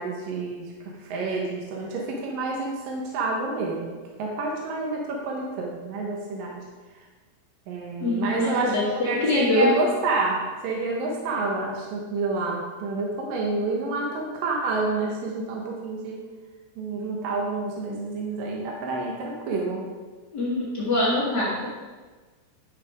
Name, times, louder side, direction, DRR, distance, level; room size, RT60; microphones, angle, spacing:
voice 1, 0.0-6.6 7.7-16.3 16.8-19.8, right 3 dB, 65° right, -1 dB, 2.4 m, -29 dB
voice 2, 8.0-9.7 20.3-21.7, left 1 dB, 80° left, -8 dB, 0.9 m, -24 dB
10.5 x 6.8 x 3.5 m, 1.3 s
omnidirectional pair, 4.7 m